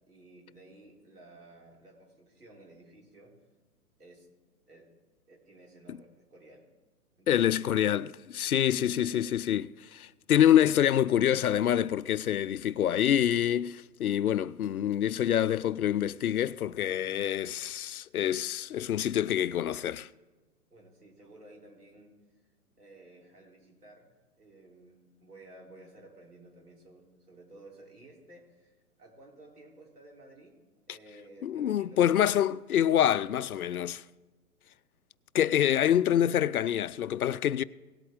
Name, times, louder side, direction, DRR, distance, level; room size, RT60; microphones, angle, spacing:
voice 1, 0.1-3.3 4.0-4.3 4.7-4.9 5.3-6.6 7.2-7.8 8.5-9.4 20.7-22.1 22.8-30.6 30.9-32.5 32.7-33.9, right 2 dB, 75° right, 3.7 m, -55 dB
voice 2, 7.3-20.1 31.4-34.0 35.3-37.6, left 10 dB, 70° left, 0.5 m, -26 dB
18.0 x 8.3 x 3.7 m
figure-of-eight pair, 120°, 46 cm